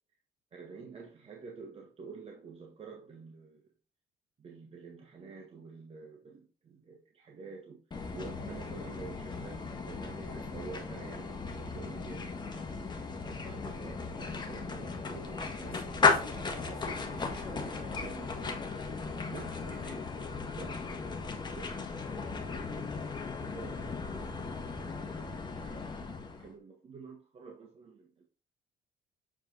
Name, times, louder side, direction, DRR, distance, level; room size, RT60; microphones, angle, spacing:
voice 1, 0.5-3.6 4.4-7.8 8.1-12.9 13.4-16.0 16.9-17.1 19.3-19.7 20.6-22.4 23.5-24.7 26.4-28.2, right 5 dB, 35° right, 1.4 m, -49 dB
sound 1, 7.9-26.5, left 4 dB, 25° left, 1.6 m, -36 dB
voice 2, 15.6-18.9 19.5-20.1, right 3 dB, 60° right, 3.5 m, -49 dB
7.5 x 4.5 x 4.0 m
cardioid pair, 110°, 17 cm